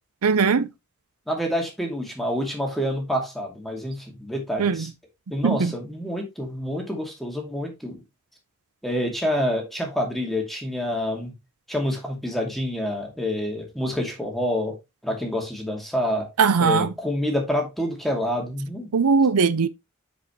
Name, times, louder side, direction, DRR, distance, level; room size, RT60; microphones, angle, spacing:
voice 1, 0.2-0.7 4.6-4.9 5.4-5.7 16.4-16.9 18.9-19.7, right 5 dB, 90° right, 0.6 m, -19 dB
voice 2, 1.3-4.9 5.3-8.0 8.8-11.3 11.7-14.7 15.0-16.3 16.6-18.9, equal, ahead, 2.3 m, -27 dB
9.5 x 5.1 x 3.1 m
head